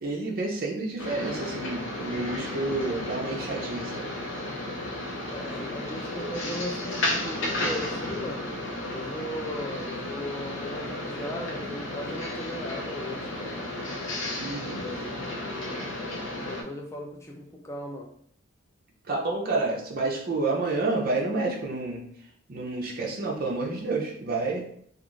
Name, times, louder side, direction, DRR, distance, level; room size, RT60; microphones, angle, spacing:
voice 1, 0.0-4.1 14.4-14.8 19.1-22.1 22.5-24.7, right 3 dB, 45° right, 0 dB, 0.6 m, -29 dB
sound 1, 1.0-16.6, left 1 dB, 65° left, 0.6 m, -33 dB
voice 2, 5.3-8.5 8.9-13.6 14.7-15.9 16.4-18.1, left 1 dB, 15° left, 0 dB, 0.4 m, -38 dB
2.4 x 2.4 x 3.0 m, 0.66 s
head